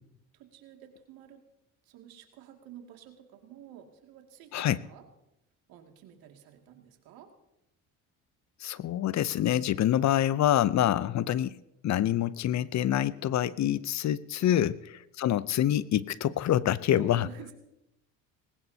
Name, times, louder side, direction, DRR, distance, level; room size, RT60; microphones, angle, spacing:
voice 1, 0.3-1.4 1.8-5.0 5.7-7.3 14.4-14.7 16.9-17.5, right 10 dB, 75° right, 3 dB, 2.4 m, -50 dB
voice 2, 8.6-11.6 11.8-14.7 15.2-17.3, left 11 dB, 50° left, 18 dB, 0.6 m, -26 dB
20.0 x 18.5 x 2.8 m, 0.87 s
supercardioid pair, 75°, 36 cm